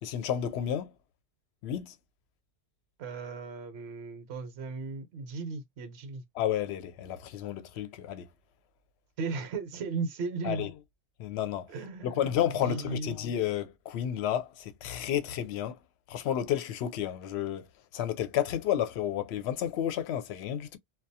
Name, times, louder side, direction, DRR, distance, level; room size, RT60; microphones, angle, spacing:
voice 1, 0.0-0.9 1.6-1.9 6.3-8.3 10.4-10.7 11.2-11.7 12.0-15.8 16.1-17.7 17.9-20.8, left 10 dB, 70° left, 0.8 m, -31 dB
voice 2, 3.0-6.2 9.2-10.7 11.7-12.2 12.5-13.1, right 4 dB, 65° right, 0.9 m, -36 dB
2.3 x 2.2 x 2.6 m
omnidirectional pair, 1.2 m